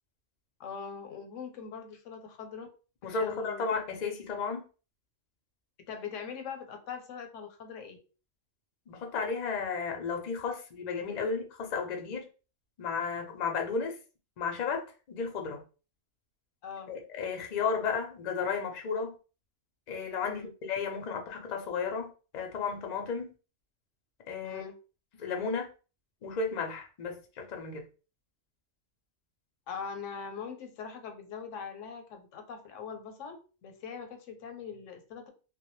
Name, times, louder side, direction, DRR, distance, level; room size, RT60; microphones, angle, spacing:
voice 1, 0.6-2.7 3.0-3.6 5.9-8.0 16.6-16.9 20.2-20.5 24.4-24.8 29.7-35.3, left 6 dB, 85° left, 0.9 m, -42 dB
voice 2, 3.0-4.7 8.9-12.3 12.8-14.0 14.4-15.6 16.9-19.1 19.9-23.3 24.3-24.6 25.2-25.7 26.2-27.8, left 5 dB, 50° left, 0.5 m, -33 dB
2.2 x 2.1 x 3.0 m
omnidirectional pair, 1.2 m